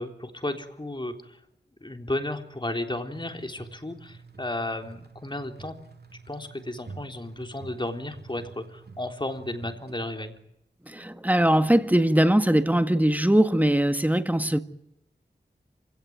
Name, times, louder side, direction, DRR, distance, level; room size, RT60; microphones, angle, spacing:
voice 1, 0.0-1.4 1.8-5.7 6.3-10.4, left 1 dB, 25° left, 3.7 m, -33 dB
sound 1, 3.1-10.2, right 4 dB, 70° right, 2.4 m, -47 dB
voice 2, 10.9-14.6, right 1 dB, 10° right, 1.7 m, -21 dB
27.5 x 17.5 x 9.4 m
wide cardioid pair, 50°, 18 cm